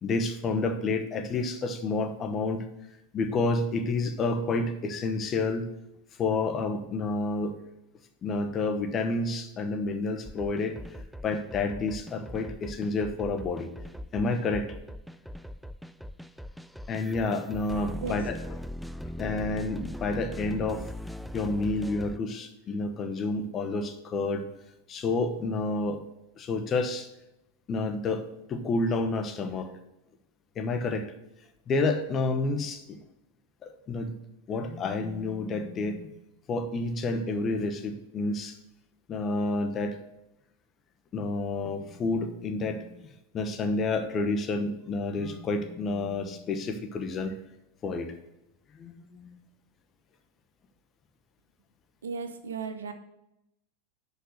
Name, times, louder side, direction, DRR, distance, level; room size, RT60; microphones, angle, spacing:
voice 1, 0.0-2.6 3.1-5.7 6.2-7.5 8.2-10.8 11.2-13.7 14.1-14.7 16.9-18.6 19.2-20.9 21.3-24.4 24.9-26.0 26.4-27.1 27.7-29.7 30.6-31.1 31.7-33.0 33.6-34.1 34.5-36.1 36.5-38.6 39.1-40.0 41.1-43.1 43.3-47.3 47.8-48.1 48.7-49.4, left 3 dB, 30° left, 8 dB, 1.0 m, -29 dB
sound 1, 10.2-22.2, left 1 dB, ahead, 0.3 m, -40 dB
voice 2, 52.0-52.9, right 5 dB, 85° right, 8 dB, 0.8 m, -35 dB
6.3 x 5.3 x 6.5 m, 0.87 s
hypercardioid pair, 100°, 0 cm